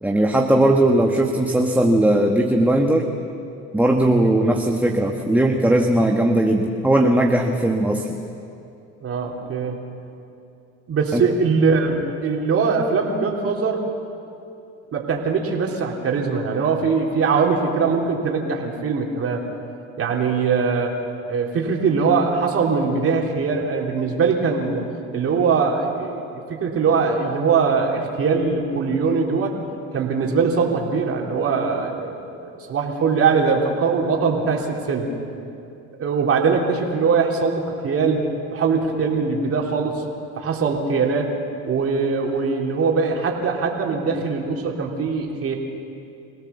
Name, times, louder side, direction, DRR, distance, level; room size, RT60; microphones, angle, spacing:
voice 1, 0.0-3.1 3.7-8.2 11.1-11.2, right 1 dB, 5° right, 2 dB, 1.5 m, -18 dB
voice 2, 9.0-9.8 10.9-13.8 14.9-19.4 20.0-21.0 21.3-24.8 25.1-29.6 29.9-35.1 36.0-40.0 40.3-41.4 41.7-45.6, right 5 dB, 45° right, 0 dB, 3.5 m, -21 dB
25.5 x 17.5 x 7.1 m, 2.7 s
supercardioid pair, 85°, 31 cm